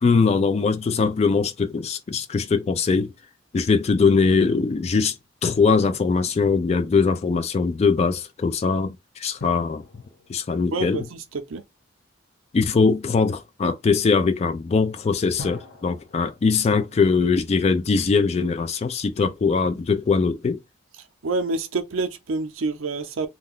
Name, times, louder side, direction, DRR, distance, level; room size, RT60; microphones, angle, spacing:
voice 1, 0.0-3.1 3.5-5.1 5.4-9.8 10.3-11.1 12.5-20.6, left 4 dB, 30° left, 0.3 m, -21 dB
sound 1, 9.4-12.0 15.4-18.0 18.3-18.4, left 2 dB, 85° left, 0.8 m, -45 dB
voice 2, 10.7-11.0 11.5-11.6 21.2-23.3, right 3 dB, 75° right, 0.5 m, -27 dB
2.4 x 2.2 x 3.5 m
head